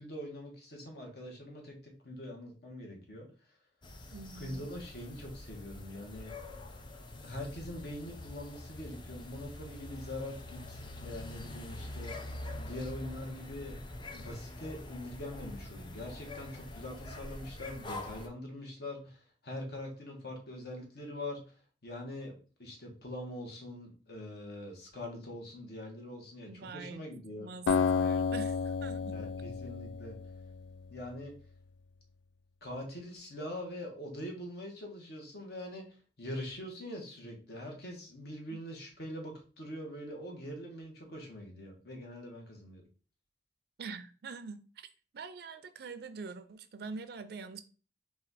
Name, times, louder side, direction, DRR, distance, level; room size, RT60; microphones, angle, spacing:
voice 1, 0.0-3.3 4.3-6.3 7.2-13.8 14.1-21.6 21.8-22.3 22.6-27.5 29.1-30.1 30.9-31.3 32.6-35.8 36.2-42.8, left 1 dB, 65° left, 1.2 m, -43 dB
sound 1, 3.8-18.3, left 1 dB, 25° left, 0.5 m, -45 dB
voice 2, 4.1-4.7 26.5-27.0 27.4-29.2 43.8-44.9 45.1-47.6, right 4 dB, 60° right, 0.4 m, -44 dB
Acoustic guitar, 27.7-30.8, left 5 dB, 90° left, 0.3 m, -31 dB
4.2 x 2.4 x 4.0 m
head